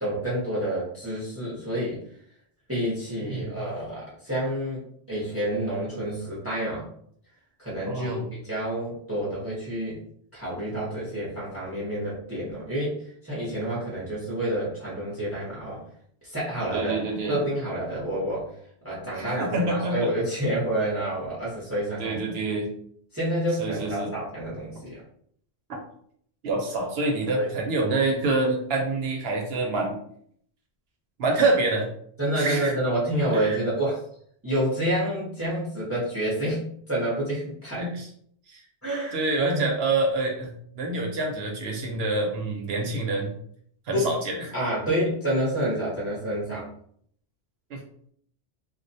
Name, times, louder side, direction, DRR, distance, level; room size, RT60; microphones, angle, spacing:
voice 1, 0.0-2.0 2.7-6.9 7.6-10.0 10.3-15.8 16.2-17.0 17.3-18.5 18.8-22.2 23.1-25.0 27.4-27.5 32.2-34.0 34.4-36.6 36.9-37.8 38.8-39.7 43.9-44.1 44.5-46.7, right 1 dB, 15° right, -6 dB, 0.6 m, -28 dB
voice 2, 7.9-8.2 16.7-17.4 19.1-20.1 22.0-22.7 23.6-24.1 25.7-25.8 26.4-30.0 31.2-31.9 32.3-32.7 33.3-33.6 37.8-38.1 38.5-38.7 39.1-43.4 43.9-44.4 47.7-47.8, right 2 dB, 65° right, 1 dB, 0.8 m, -26 dB
2.3 x 2.1 x 2.6 m, 0.65 s
omnidirectional pair, 1.2 m